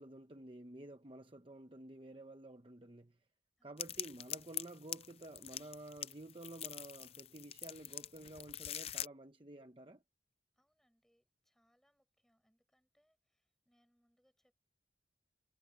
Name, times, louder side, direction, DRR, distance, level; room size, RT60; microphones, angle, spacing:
voice 1, 0.0-3.2 3.6-10.0, right 1 dB, 30° right, 0.9 m, -51 dB
voice 2, 3.6-3.9 10.5-14.5, equal, ahead, 7.0 m, -78 dB
sound 1, 3.8-9.1, left 11 dB, 35° left, 0.5 m, -44 dB
head